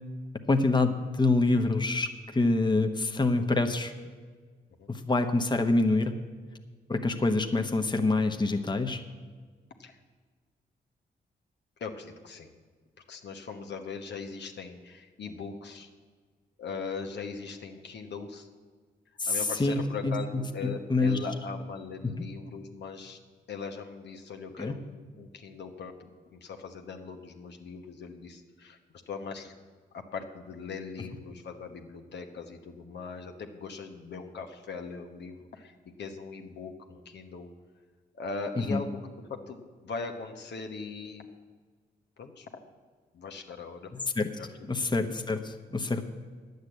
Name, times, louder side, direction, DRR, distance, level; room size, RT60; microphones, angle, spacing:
voice 1, 0.5-3.9 4.9-6.1 6.9-9.0 19.2-21.2 22.2-22.3 24.6-24.7 38.7-38.8 43.9-44.3 44.7-46.0, left 2 dB, 25° left, 5 dB, 1.1 m, -26 dB
voice 2, 11.8-12.5 13.1-15.9 16.6-18.5 19.3-23.2 23.5-28.8 29.1-29.5 29.9-37.5 38.1-39.0 39.3-41.3 42.2-42.5 43.1-43.9 44.4-44.7, left 5 dB, 70° left, 4 dB, 1.2 m, -40 dB
10.0 x 8.1 x 8.0 m, 1.5 s
supercardioid pair, 50°, 19 cm